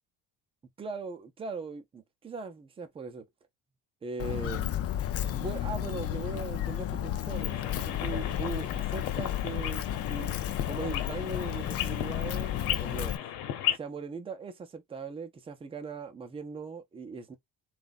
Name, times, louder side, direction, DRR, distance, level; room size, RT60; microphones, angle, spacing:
voice 1, 0.8-3.3 4.0-4.7 5.2-10.4 10.7-13.2 13.7-17.4, right 4 dB, 15° right, 0.6 m, -39 dB
Walk footsteps, 4.2-13.2, left 12 dB, 40° left, 0.5 m, -33 dB
sound 1, 7.3-13.8, left 11 dB, 90° left, 1.1 m, -35 dB
3.9 x 2.4 x 4.0 m
cardioid pair, 160°, 36 cm